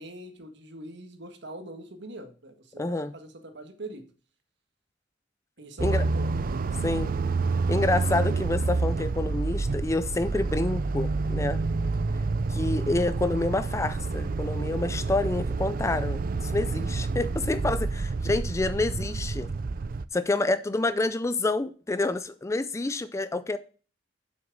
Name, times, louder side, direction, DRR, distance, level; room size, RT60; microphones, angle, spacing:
voice 1, 0.0-4.0 5.6-6.6 20.4-20.6, right 1 dB, 60° right, 1.7 m, -43 dB
voice 2, 2.8-3.1 5.8-6.1 6.8-7.1 7.7-11.6 12.5-19.5 20.1-23.6, left 2 dB, 15° left, 0.3 m, -28 dB
sound 1, 5.8-20.0, right 3 dB, 45° right, 0.4 m, -28 dB
7.6 x 6.1 x 6.0 m
head